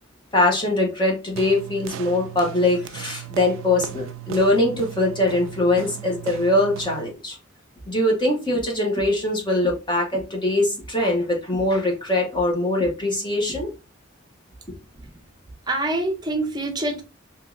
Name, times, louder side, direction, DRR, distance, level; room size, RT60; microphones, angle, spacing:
voice 1, 0.3-7.4 7.9-13.7, left 1 dB, 20° left, 0.8 m, -22 dB
sound 1, 1.4-7.2, right 10 dB, 80° right, 0.3 m, -37 dB
voice 2, 15.7-17.0, right 2 dB, 20° right, 0.7 m, -26 dB
2.9 x 2.7 x 3.6 m
head